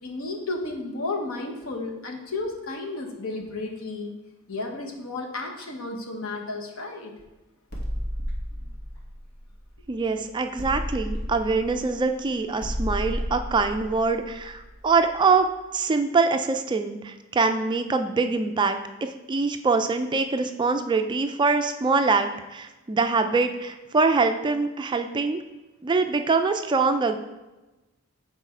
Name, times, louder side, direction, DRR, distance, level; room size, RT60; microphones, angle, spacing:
voice 1, 0.0-4.1 4.5-7.1, left 2 dB, 75° left, 2 dB, 1.0 m, -33 dB
sound 1, 7.7-10.1 10.6-15.2, equal, 50° left, 1.5 m, -32 dB
voice 2, 9.9-25.4 25.8-27.2, right 4 dB, 20° right, 7 dB, 0.3 m, -24 dB
6.9 x 4.2 x 4.4 m, 1.1 s
head